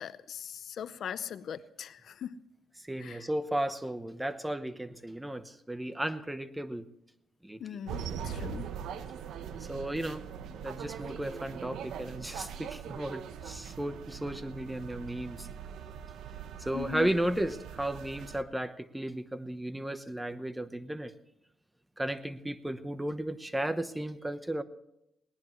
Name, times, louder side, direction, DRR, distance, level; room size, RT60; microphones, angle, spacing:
voice 1, 0.0-2.4 3.0-3.3 7.6-8.7 16.7-17.1, left 9 dB, 65° left, 14 dB, 0.7 m, -40 dB
voice 2, 2.8-6.9 7.4-7.8 9.6-10.2 10.6-15.5 16.6-21.1 22.0-24.6, right 1 dB, 10° right, 12 dB, 1.0 m, -34 dB
sound 1, 7.9-18.4, right 8 dB, 75° right, 1.0 m, -41 dB
20.5 x 18.5 x 3.2 m, 0.82 s
cardioid pair, 90°, 0 cm